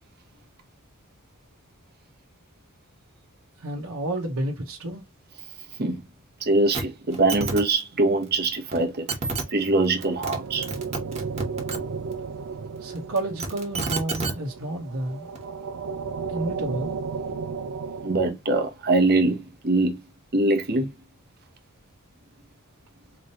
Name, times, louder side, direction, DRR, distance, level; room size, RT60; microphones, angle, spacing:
voice 1, 3.6-5.0 12.8-15.3 16.3-16.9, right 1 dB, 90° right, 1.1 m, -30 dB
voice 2, 6.4-9.1 9.5-10.7 18.0-20.0 20.3-20.9, right 2 dB, 50° right, 1.0 m, -23 dB
sound 1, 6.7-6.8 7.1-7.6 8.7-8.8 9.1-9.4 10.0-10.4 10.6-11.8 13.2-14.3 15.4-15.5, right 3 dB, 30° right, 1.3 m, -29 dB
sound 2, 9.4-18.3, right 5 dB, 65° right, 0.4 m, -34 dB
3.9 x 3.2 x 2.9 m
head